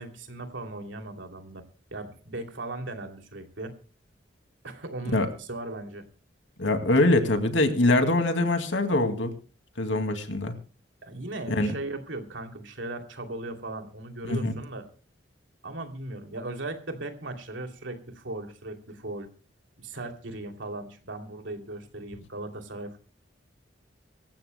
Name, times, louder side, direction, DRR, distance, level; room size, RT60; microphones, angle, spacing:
voice 1, 0.0-1.6 1.9-3.8 4.6-6.0 11.0-14.8 15.6-19.3 19.8-23.0, right 2 dB, 85° right, 5 dB, 2.8 m, -37 dB
voice 2, 6.6-9.3 9.8-10.5 11.5-11.7 14.2-14.5, left 2 dB, 80° left, 7 dB, 2.3 m, -23 dB
25.0 x 15.0 x 2.2 m, 0.38 s
head